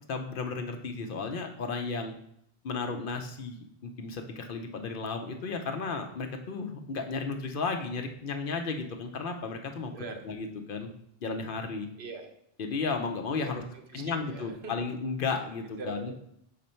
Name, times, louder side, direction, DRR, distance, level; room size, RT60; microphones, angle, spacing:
voice 1, 0.1-2.1 2.6-9.9 10.2-10.9 11.2-11.9 12.6-13.6 13.9-16.1, left 4 dB, 60° left, 4 dB, 0.8 m, -34 dB
voice 2, 12.0-12.3 13.4-13.5 13.9-14.0 14.3-14.7 15.8-16.1, right 4 dB, 80° right, 4 dB, 1.1 m, -41 dB
5.2 x 4.2 x 4.3 m, 0.72 s
omnidirectional pair, 1.1 m